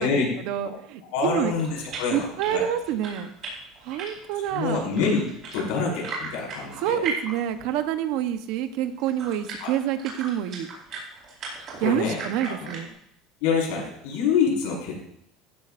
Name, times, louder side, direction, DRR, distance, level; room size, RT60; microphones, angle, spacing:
voice 1, 0.0-1.5 2.1-3.3 3.8-4.9 6.8-10.7 11.8-12.9, right 10 dB, 60° right, 8 dB, 1.0 m, -27 dB
voice 2, 1.1-2.7 4.5-5.2 5.5-7.0 9.6-9.7 11.8-12.7 13.4-15.1, left 5 dB, 85° left, -1 dB, 5.4 m, -26 dB
sound 1, 1.5-7.8 8.1-8.2 8.8-12.9, right 4 dB, 35° right, 4.7 m, -38 dB
15.0 x 13.0 x 2.6 m, 0.73 s
cardioid pair, 175°, 0 cm